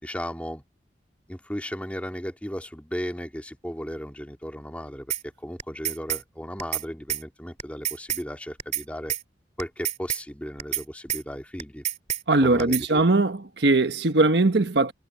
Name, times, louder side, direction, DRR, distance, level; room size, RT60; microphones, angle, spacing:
voice 1, 0.0-0.6 1.3-9.2 9.6-11.8 12.4-13.0, equal, 10° left, 2.3 m, -35 dB
sound 1, 5.1-5.2 5.6-6.2 6.6-6.8 7.1-7.2 7.6-8.2 8.6-8.8 9.1-9.2 9.6-10.2 10.6-10.8 11.1-11.2 11.6-12.2 12.6-12.8, right 11 dB, 40° right, 2.4 m, -28 dB
voice 2, 12.3-14.9, right 2 dB, 65° right, 1.2 m, -20 dB
head